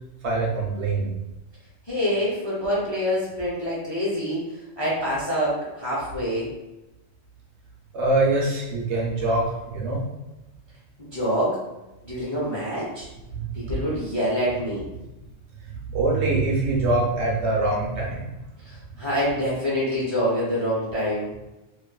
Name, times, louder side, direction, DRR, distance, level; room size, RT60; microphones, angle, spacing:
voice 1, 0.2-1.1 7.9-10.0 13.3-13.4 15.6-18.3, right 2 dB, 65° right, -3 dB, 0.8 m, -24 dB
voice 2, 1.9-4.4 4.8-6.5 11.0-11.6 12.0-13.1 13.5-14.9 18.6-21.3, equal, 35° left, -8 dB, 0.5 m, -26 dB
2.6 x 2.3 x 2.2 m, 0.99 s
omnidirectional pair, 1.3 m